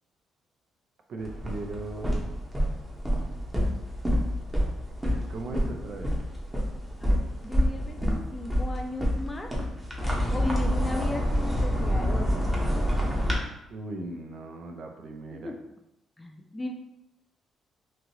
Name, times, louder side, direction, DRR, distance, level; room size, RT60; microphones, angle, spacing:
voice 1, 1.1-2.2 5.0-6.1 13.7-15.5, right 2 dB, 65° right, 3 dB, 0.4 m, -38 dB
sound 1, 1.2-13.4, equal, 10° right, 0.7 m, -28 dB
voice 2, 7.0-9.5 10.3-12.5 15.3-15.6 16.2-16.7, left 2 dB, 20° left, 3 dB, 0.4 m, -36 dB
3.0 x 2.5 x 2.7 m, 0.86 s
cardioid pair, 90°, 0 cm